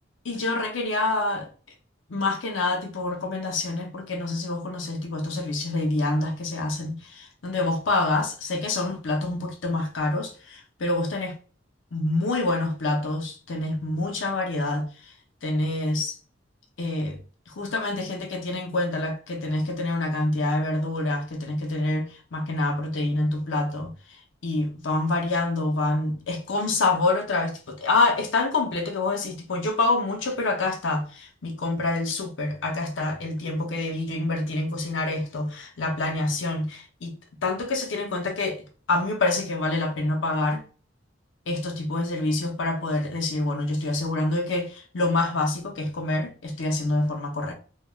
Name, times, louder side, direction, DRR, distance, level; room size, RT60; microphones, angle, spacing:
voice 1, 0.2-1.5 2.1-11.4 11.9-14.9 15.4-16.2 16.8-17.2 17.5-23.9 24.4-37.1 37.4-40.6 41.5-47.5, left 2 dB, 80° left, 0.6 m, -26 dB
2.3 x 2.2 x 2.9 m
head